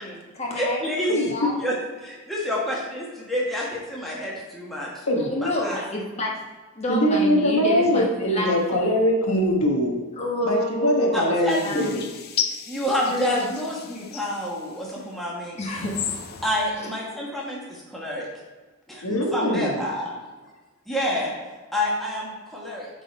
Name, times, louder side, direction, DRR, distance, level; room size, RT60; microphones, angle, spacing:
voice 1, 0.0-1.6 5.2-6.3 6.8-8.8 10.2-11.2 11.6-12.0 13.1-13.5 15.6-16.0 16.8-16.9, left 1 dB, 30° left, -2 dB, 1.2 m, -29 dB
voice 2, 0.5-1.1 1.6-5.0 5.4-5.8 11.1-12.1 12.7-15.6 16.4-18.3 18.9-20.2 20.9-21.3 21.7-22.9, left 1 dB, ahead, -5 dB, 1.3 m, -28 dB
voice 3, 5.1-5.4 6.9-10.0 10.4-12.0 19.0-19.7, equal, 85° left, 0 dB, 1.3 m, -22 dB
sound 1, 11.5-15.0 15.6-16.7, left 8 dB, 45° left, 0.5 m, -34 dB
7.9 x 4.0 x 4.3 m, 1.3 s
head